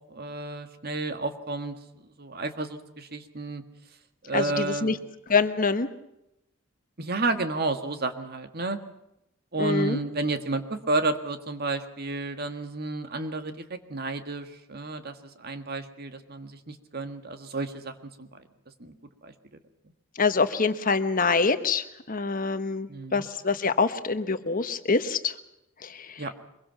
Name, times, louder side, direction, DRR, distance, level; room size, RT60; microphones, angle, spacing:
voice 1, 0.1-1.7 2.0-3.6 4.2-5.0 7.0-8.8 9.5-17.9 18.2-18.3 18.8-18.9 19.2-19.3 22.9-23.2 26.2-26.3, right 3 dB, 50° right, 8 dB, 1.8 m, -31 dB
voice 2, 4.3-5.0 5.3-5.9 9.6-10.0 20.2-25.3 25.8-26.2, left 4 dB, 45° left, 10 dB, 1.2 m, -25 dB
24.0 x 22.5 x 5.9 m, 0.86 s
head